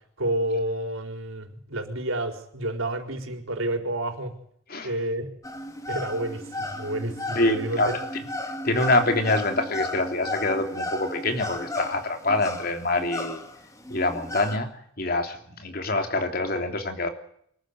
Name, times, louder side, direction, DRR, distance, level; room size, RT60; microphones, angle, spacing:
voice 1, 0.2-4.3 4.8-5.3 5.9-7.9, right 1 dB, 75° right, 5 dB, 4.4 m, -29 dB
sound 1, 5.4-14.6, left 1 dB, 15° left, 2.0 m, -34 dB
voice 2, 7.3-8.0 8.6-13.4 13.9-17.1, left 2 dB, 45° left, 6 dB, 3.2 m, -25 dB
24.5 x 14.5 x 9.5 m, 0.66 s
head